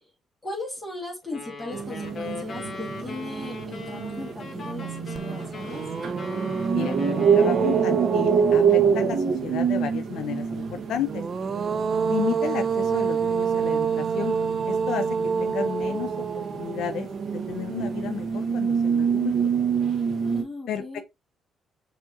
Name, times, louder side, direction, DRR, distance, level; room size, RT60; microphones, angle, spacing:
voice 1, 0.4-5.8 15.4-16.0 20.2-21.0, left 2 dB, 10° left, 1.7 m, -37 dB
sound 1, 1.3-8.1, left 4 dB, 50° left, 1.1 m, -39 dB
sound 2, 1.7-20.4, right 7 dB, 60° right, 0.9 m, -26 dB
sound 3, 5.1-5.2 5.6-9.3 11.0-18.2, right 5 dB, 45° right, 0.3 m, -28 dB
voice 2, 6.7-11.2 12.1-14.4 14.7-15.1 15.4-19.5 20.7-21.0, left 9 dB, 80° left, 0.4 m, -33 dB
6.1 x 2.7 x 2.4 m
cardioid pair, 90°, 0 cm